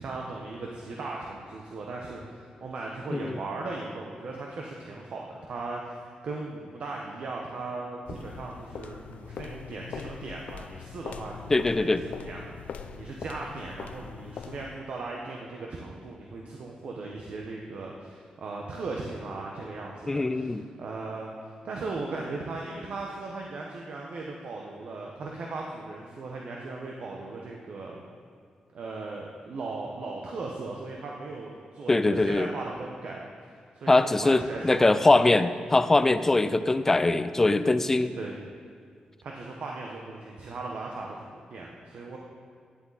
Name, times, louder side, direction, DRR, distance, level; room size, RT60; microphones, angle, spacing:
voice 1, 0.0-11.5 11.8-12.4 12.9-28.0 28.7-33.5 33.7-35.0 38.2-38.3 39.2-42.2, right 3 dB, 55° right, -1 dB, 1.1 m, -38 dB
sound 1, 8.1-14.9, left 7 dB, 70° left, 0.5 m, -42 dB
voice 2, 11.5-12.0 20.1-20.6 31.9-32.5 33.9-38.1, left 2 dB, 15° left, 12 dB, 0.4 m, -22 dB
16.5 x 10.0 x 4.1 m, 2.1 s
wide cardioid pair, 165°, 2 cm